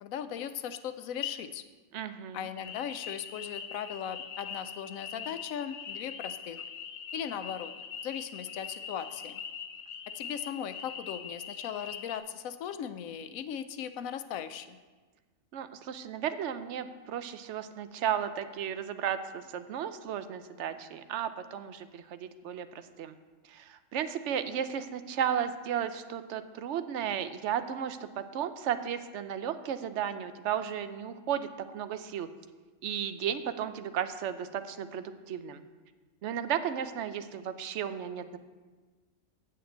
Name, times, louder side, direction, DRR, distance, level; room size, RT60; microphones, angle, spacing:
voice 1, 0.0-1.6 2.3-6.6 7.1-7.7 8.0-9.4 10.1-14.8, left 9 dB, 90° left, 11 dB, 1.1 m, -38 dB
voice 2, 1.9-2.5 15.5-23.2 23.5-31.5 31.7-32.3 32.8-35.6 36.2-38.4, right 9 dB, 65° right, 11 dB, 0.9 m, -34 dB
sound 1, 2.6-12.2, left 7 dB, 55° left, 0.8 m, -42 dB
7.6 x 6.8 x 7.9 m, 1.3 s
omnidirectional pair, 1.4 m